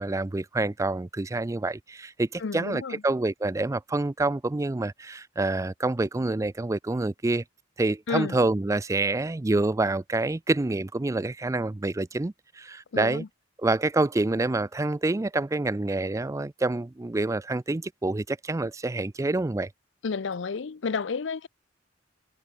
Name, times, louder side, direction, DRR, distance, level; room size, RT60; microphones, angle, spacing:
voice 1, 0.0-7.4 7.8-13.2 13.6-19.7, right 2 dB, 15° right, 0.4 m, -27 dB
voice 2, 2.4-3.0 8.1-8.4 12.9-13.3 20.0-21.5, left 5 dB, 75° left, 0.5 m, -31 dB
head